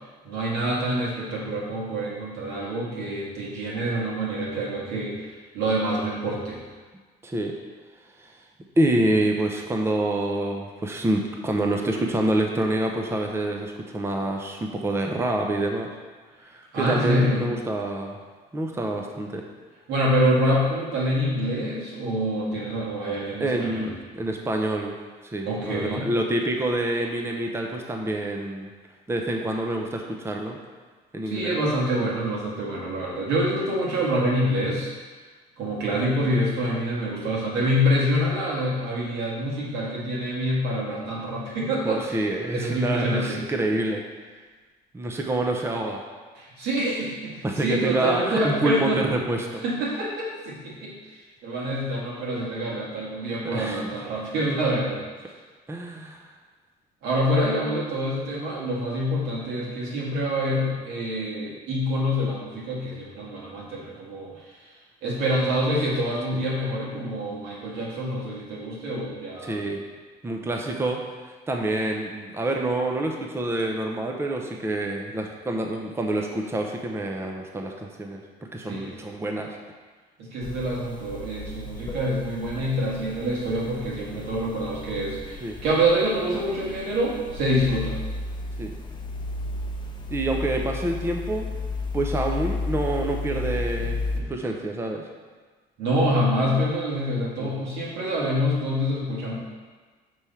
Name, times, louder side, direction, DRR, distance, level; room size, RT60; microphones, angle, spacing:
voice 1, 0.2-6.6 16.7-17.4 19.9-23.9 25.4-26.1 31.3-34.9 35.6-42.2 42.5-43.4 46.3-49.0 49.6-55.0 57.0-64.5 65.0-69.7 78.7-79.1 80.2-88.0 95.8-99.3, equal, 90° right, -5 dB, 2.0 m, -26 dB
voice 2, 7.2-7.6 8.2-8.4 8.8-15.9 16.4-18.2 18.5-19.4 23.4-25.0 25.2-28.7 29.1-30.6 31.1-31.6 41.8-44.0 44.9-46.0 47.4-49.6 53.4-53.9 55.7-56.3 66.3-66.4 69.4-69.8 70.2-71.0 71.5-78.2 78.5-79.6 85.4-85.6 88.6-88.7 90.1-91.5 91.9-94.0 94.3-95.0 97.4-97.5, right 1 dB, 15° right, 2 dB, 0.6 m, -27 dB
sound 1, 80.4-94.2, left 2 dB, 25° left, 0.8 m, -33 dB
6.1 x 3.4 x 5.6 m, 1.4 s
cardioid pair, 110°, 17 cm